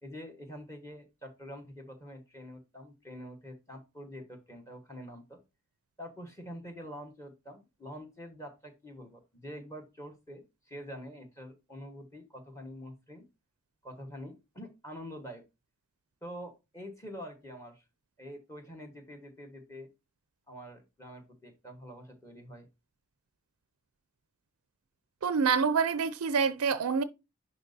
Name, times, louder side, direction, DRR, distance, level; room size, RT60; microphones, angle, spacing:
voice 1, 0.0-5.4 6.0-13.3 13.8-15.4 16.2-17.8 18.2-19.9 20.5-22.7, equal, 15° left, 1.4 m, -46 dB
voice 2, 25.2-27.0, right 5 dB, 75° right, 0.5 m, -26 dB
10.5 x 4.2 x 2.7 m
head